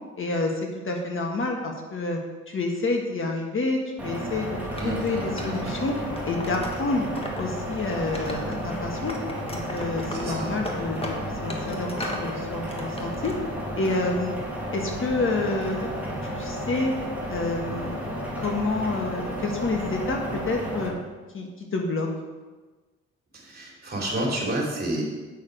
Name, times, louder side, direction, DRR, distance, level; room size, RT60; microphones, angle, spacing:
voice 1, 0.2-2.2 2.5-4.6 4.8-6.0 6.3-7.1 7.4-9.2 9.5-11.1 11.4-13.3 13.8-14.3 14.7-15.9 16.2-17.0 17.3-18.1 18.4-20.9 21.3-22.1, left 2 dB, 45° left, 2 dB, 1.4 m, -28 dB
sound 1, 4.0-20.9, equal, 5° right, 2.5 m, -32 dB
Wood, 4.7-7.4 7.7-8.8 9.1-12.3 12.7-13.3, left 1 dB, 20° left, 1.5 m, -38 dB
voice 2, 4.8-5.6 10.1-10.5 23.3-25.0, right 1 dB, 30° right, -2 dB, 3.1 m, -30 dB
8.3 x 6.4 x 5.1 m, 1.3 s
cardioid pair, 90°, 30 cm